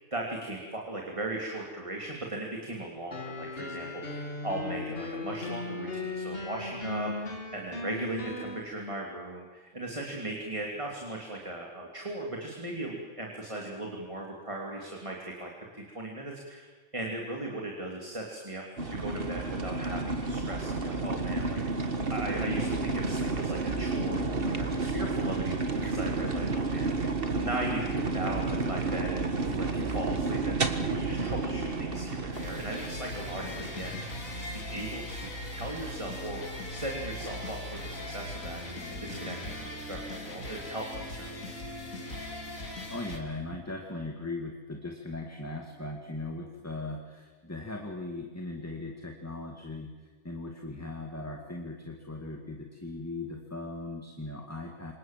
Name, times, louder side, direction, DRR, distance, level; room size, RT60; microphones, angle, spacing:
voice 1, 0.1-16.7 16.9-34.1 34.3-36.4 36.7-41.5, right 1 dB, 20° right, -1 dB, 3.2 m, -38 dB
sound 1, 3.1-8.6, left 2 dB, 45° left, 3.2 m, -37 dB
sound 2, 18.8-38.1, right 3 dB, 40° right, 1.8 m, -32 dB
sound 3, 32.3-43.2, left 1 dB, 75° left, 3.9 m, -39 dB
voice 2, 42.6-49.9 50.2-54.9, left 2 dB, 10° left, 2 dB, 2.2 m, -39 dB
29.5 x 26.0 x 7.6 m, 1.4 s
omnidirectional pair, 1.4 m